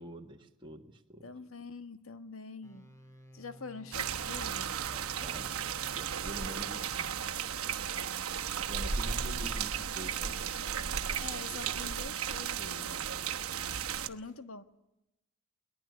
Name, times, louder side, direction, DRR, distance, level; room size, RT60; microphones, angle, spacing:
voice 1, 0.0-1.3 4.9-7.1 8.6-10.4 11.5-11.8, right 1 dB, 20° right, 1 dB, 1.6 m, -47 dB
voice 2, 1.2-2.9 3.3-4.8 9.1-9.6 11.2-13.0 14.0-14.6, left 4 dB, 70° left, 11 dB, 1.3 m, -45 dB
sound 1, 2.6-7.9, equal, 15° left, 2.3 m, -55 dB
sound 2, 3.9-14.1, right 7 dB, 80° right, 1.2 m, -35 dB
22.0 x 20.0 x 9.8 m, 0.91 s
head